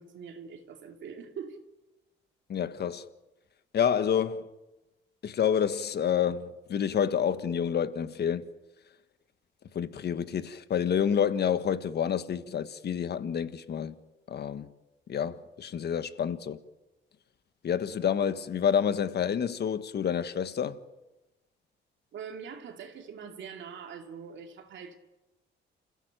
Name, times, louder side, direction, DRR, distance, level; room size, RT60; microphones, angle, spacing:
voice 1, 0.0-1.6 22.1-25.0, right 6 dB, 70° right, 2.7 m, -43 dB
voice 2, 2.5-3.0 3.7-4.5 5.2-8.4 9.7-14.0 14.3-14.7 15.1-16.6 17.6-20.8, left 8 dB, 55° left, 1.5 m, -28 dB
27.5 x 15.5 x 9.0 m
cardioid pair, 90°, 20 cm